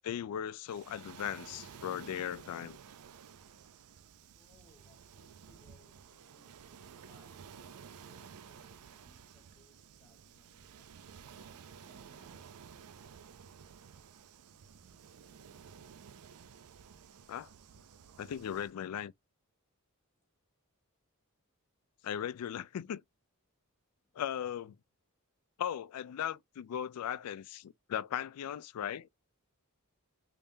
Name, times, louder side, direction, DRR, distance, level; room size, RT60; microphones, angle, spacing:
voice 1, 0.0-2.8 17.3-17.5 18.2-19.1 22.0-23.0 24.2-24.8 25.6-29.1, left 9 dB, 85° left, 0.3 m, -38 dB
Waves surf, 0.7-18.7, right 7 dB, 85° right, 0.5 m, -53 dB
voice 2, 4.3-12.8 20.2-20.3 23.9-24.2, left 2 dB, 15° left, 1.2 m, -68 dB
3.5 x 3.3 x 2.6 m
head